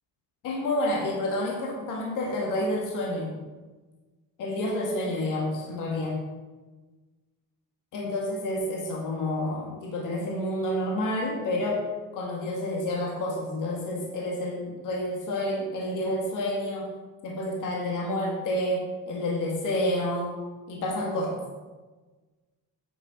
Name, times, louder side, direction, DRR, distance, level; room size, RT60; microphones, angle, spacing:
voice 1, 0.4-3.3 4.4-6.2 7.9-11.8 12.1-16.9 17.2-20.4 20.7-21.4, left 1 dB, 60° left, -1 dB, 1.9 m, -29 dB
9.1 x 9.0 x 3.8 m, 1.3 s
cardioid pair, 170°, 35 cm